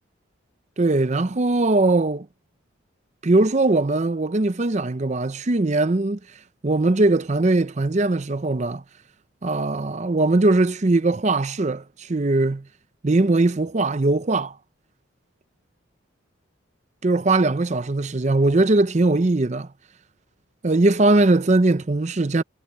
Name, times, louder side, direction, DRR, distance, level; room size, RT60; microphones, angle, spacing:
voice 1, 0.8-2.3 3.2-6.2 6.6-8.8 9.4-12.6 13.0-14.5 17.0-19.7 20.6-22.4, right 2 dB, 35° right, 0.6 m, -20 dB
head